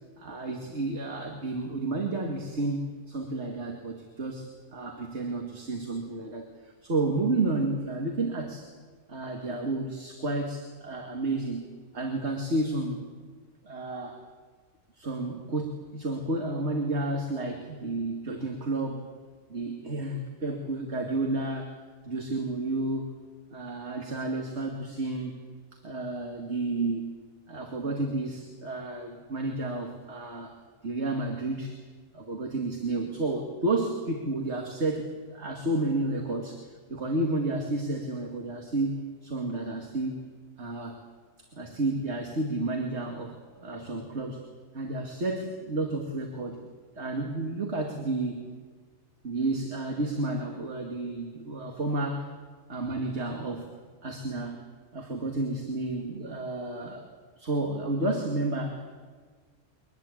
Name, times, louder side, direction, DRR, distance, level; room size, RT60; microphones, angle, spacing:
voice 1, 0.2-8.7 9.1-11.7 11.9-13.1 13.6-14.2 14.9-19.1 19.5-21.8 22.0-23.2 23.5-25.4 25.7-27.1 27.5-30.6 30.8-31.8 32.1-36.6 36.9-40.2 40.6-41.0 41.4-44.4 44.7-46.6 46.9-48.5 49.2-52.3 52.7-53.7 54.0-54.7 54.9-57.1 57.4-58.9, right 2 dB, 55° right, 2 dB, 2.5 m, -31 dB
23.5 x 20.0 x 8.7 m, 1.5 s
omnidirectional pair, 1.4 m